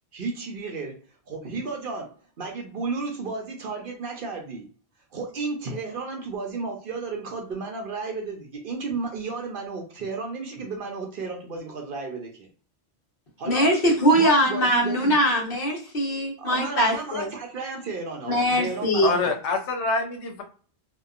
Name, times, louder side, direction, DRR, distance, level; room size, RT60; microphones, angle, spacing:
voice 1, 0.1-1.0 1.3-4.7 5.1-12.5 13.4-13.7 14.1-15.1 16.4-19.3, right 4 dB, 60° right, 2 dB, 0.7 m, -33 dB
voice 2, 13.4-17.3 18.2-19.1, equal, 55° left, -2 dB, 1.1 m, -22 dB
voice 3, 19.0-20.4, left 3 dB, 90° left, 3 dB, 1.0 m, -26 dB
2.7 x 2.2 x 2.3 m, 0.42 s
omnidirectional pair, 1.1 m